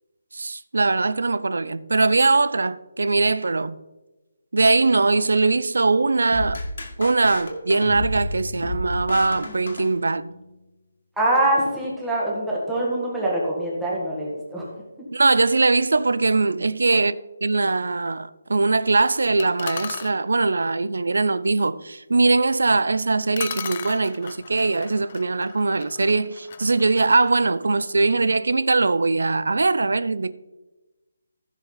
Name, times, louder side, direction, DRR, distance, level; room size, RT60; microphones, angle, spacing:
voice 1, 0.3-3.8 4.5-6.6 7.0-10.3 15.1-30.3, right 3 dB, 85° right, 0.5 m, -21 dB
sound 1, 6.3-10.5, left 1 dB, 60° left, 2.0 m, -32 dB
voice 2, 11.2-14.7, right 1 dB, 5° right, 1.9 m, -24 dB
sound 2, 19.4-20.2 22.8-22.9 23.4-28.2, left 7 dB, 30° left, 0.5 m, -37 dB
15.0 x 6.3 x 4.0 m
hypercardioid pair, 175°, 0 cm